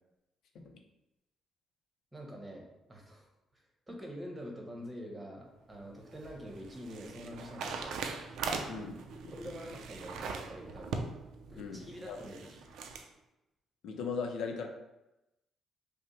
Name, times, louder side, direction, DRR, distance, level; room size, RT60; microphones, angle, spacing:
voice 1, 2.1-3.3 3.5-8.0 9.3-11.0 11.5-12.7, equal, 15° right, 0 dB, 1.1 m, -46 dB
sound 1, 5.7-13.1, right 4 dB, 80° right, 0.4 m, -41 dB
voice 2, 8.7-9.0 9.2-9.3 11.6-12.2 13.8-14.7, left 5 dB, 80° left, 3 dB, 0.5 m, -38 dB
5.4 x 2.1 x 3.2 m, 0.95 s
cardioid pair, 90°, 0 cm